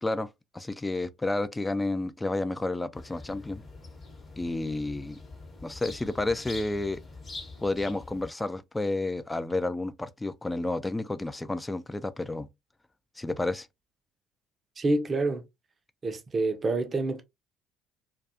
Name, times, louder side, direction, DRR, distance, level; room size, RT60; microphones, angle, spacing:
voice 1, 0.0-3.6 4.4-5.2 5.6-7.0 7.6-12.5 13.2-13.7, left 2 dB, 15° left, 0.3 m, -31 dB
sound 1, 2.9-8.3, left 3 dB, 35° left, 0.9 m, -44 dB
voice 2, 14.8-15.4 16.0-17.2, right 2 dB, 35° right, 0.5 m, -27 dB
2.3 x 2.3 x 2.7 m
figure-of-eight pair, 55°, 0 cm